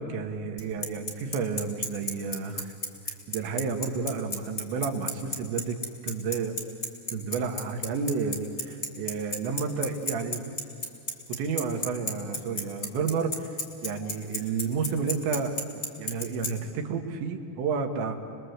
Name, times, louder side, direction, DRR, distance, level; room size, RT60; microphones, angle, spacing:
voice 1, 0.0-2.8 3.1-5.8 6.0-6.5 7.1-10.5 11.3-18.2, right 5 dB, 70° right, 5 dB, 3.6 m, -31 dB
Bicycle, 0.6-16.5, left 2 dB, 25° left, 1.5 m, -31 dB
30.0 x 21.5 x 8.1 m, 2.8 s
omnidirectional pair, 5.8 m